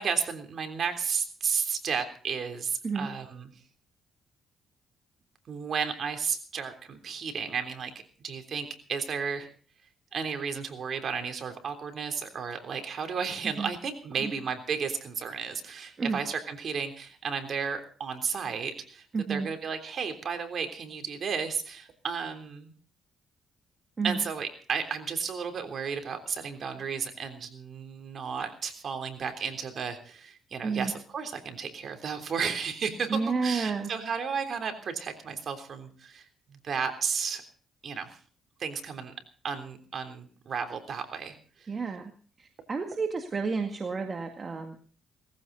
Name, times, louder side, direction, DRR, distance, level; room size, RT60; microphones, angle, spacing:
voice 1, 0.0-3.5 5.5-7.9 8.2-9.5 10.1-22.7 24.0-37.4 37.8-38.2 38.6-39.1 39.4-41.7, right 6 dB, 55° right, 6 dB, 3.4 m, -33 dB
voice 2, 19.1-19.5 24.0-24.2 30.6-30.9 33.1-33.9 41.7-42.1 42.4-44.8, right 4 dB, 35° right, 4 dB, 2.0 m, -31 dB
18.5 x 15.5 x 4.0 m, 0.42 s
cardioid pair, 90°, 0 cm